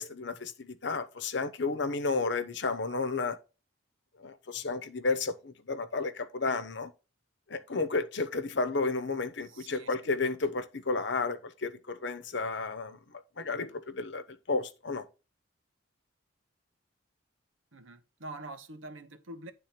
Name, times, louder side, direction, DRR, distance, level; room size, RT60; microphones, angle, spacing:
voice 1, 0.0-3.4 4.2-6.9 7.5-13.0 13.4-15.0, left 3 dB, 60° left, 0.9 m, -32 dB
voice 2, 9.4-9.9 17.7-19.5, right 2 dB, 80° right, 1.0 m, -45 dB
10.0 x 3.7 x 5.9 m
head